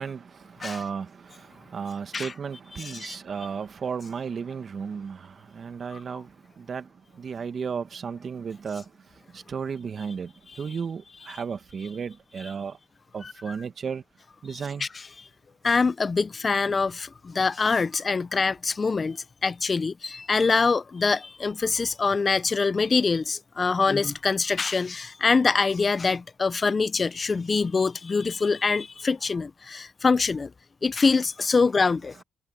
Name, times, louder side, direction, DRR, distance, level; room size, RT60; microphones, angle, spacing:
voice 1, 0.0-12.8 13.1-14.0 14.4-14.9, right 6 dB, 45° right, 1.7 m, -34 dB
voice 2, 2.8-3.2 5.9-6.0 13.2-13.3 14.8-14.9 15.6-30.5 30.8-32.2, left 4 dB, 30° left, 0.6 m, -24 dB
cardioid pair, 90°, 0 cm